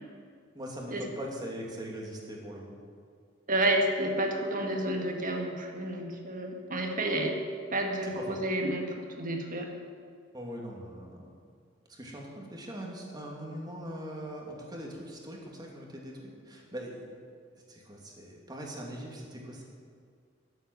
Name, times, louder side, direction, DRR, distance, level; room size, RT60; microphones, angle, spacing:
voice 1, 0.5-2.8 8.0-8.2 10.3-11.3 11.9-17.1 17.7-19.6, equal, 20° right, -2 dB, 2.7 m, -41 dB
voice 2, 3.5-7.4 7.7-9.7, right 1 dB, 45° right, 2 dB, 1.9 m, -30 dB
13.0 x 8.3 x 9.5 m, 2.1 s
head